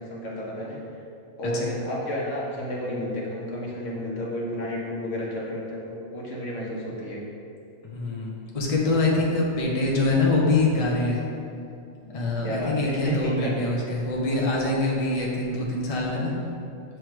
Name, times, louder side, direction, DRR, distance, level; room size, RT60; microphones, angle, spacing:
voice 1, 0.1-0.8 1.4-7.2 12.4-13.5 13.9-14.0, equal, 75° left, -4 dB, 1.5 m, -31 dB
voice 2, 1.4-1.8 7.8-11.2 12.0-16.3, left 2 dB, 35° left, -3 dB, 0.8 m, -24 dB
7.8 x 3.2 x 4.6 m, 2.6 s
omnidirectional pair, 1.3 m